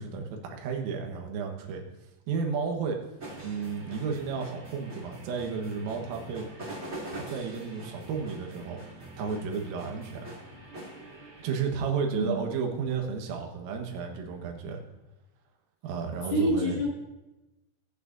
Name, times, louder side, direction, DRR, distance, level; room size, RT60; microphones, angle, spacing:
voice 1, 0.0-1.8 2.3-3.0 3.4-6.5 7.1-10.4 11.4-14.8 15.8-16.8, right 5 dB, 85° right, 2 dB, 4.1 m, -32 dB
sound 1, 3.2-11.6, right 1 dB, 35° right, 1.0 m, -44 dB
voice 2, 16.3-16.9, equal, 50° left, -6 dB, 3.7 m, -26 dB
20.5 x 8.9 x 2.7 m, 1.0 s
omnidirectional pair, 5.8 m